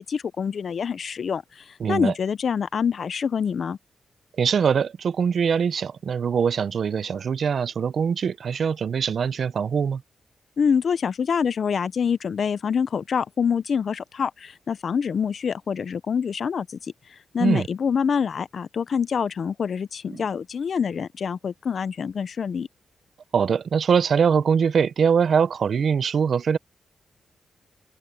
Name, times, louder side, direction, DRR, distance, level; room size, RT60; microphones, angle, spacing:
voice 1, 0.0-3.8 10.6-22.7, left 6 dB, 55° left, 0.6 m, -26 dB
voice 2, 1.8-2.1 4.4-10.0 17.4-17.7 20.1-20.2 23.3-26.6, right 6 dB, 60° right, 0.5 m, -22 dB
cardioid pair, 110°, 0 cm